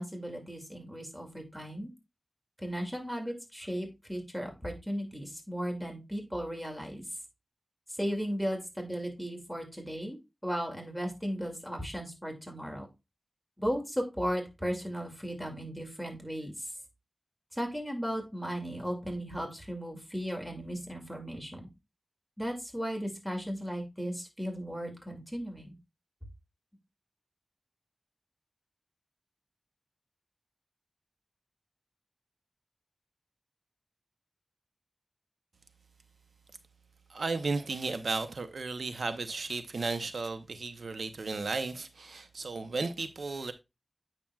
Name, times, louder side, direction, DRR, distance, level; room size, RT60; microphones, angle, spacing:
voice 1, 0.0-1.9 2.6-7.0 7.9-10.2 10.4-12.9 13.6-16.7 17.5-21.7 22.4-25.7, equal, 5° right, 2.4 m, -36 dB
voice 2, 37.1-43.5, right 3 dB, 90° right, 0.7 m, -34 dB
8.7 x 5.9 x 2.3 m
cardioid pair, 45°, 0 cm